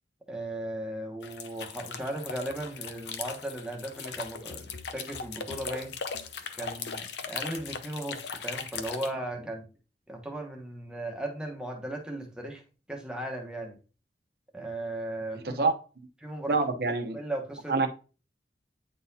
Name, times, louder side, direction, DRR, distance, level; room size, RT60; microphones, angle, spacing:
voice 1, 0.3-5.9 6.6-9.6 10.1-12.6 12.9-13.8 14.5-15.6 16.2-16.6 17.1-17.7, right 1 dB, 5° right, 1 dB, 1.1 m, -36 dB
sound 1, 1.2-9.1, left 6 dB, 80° left, 0.7 m, -39 dB
voice 2, 16.5-17.2 17.7-17.9, right 4 dB, 60° right, 7 dB, 0.8 m, -26 dB
9.1 x 4.0 x 2.7 m, 0.35 s
head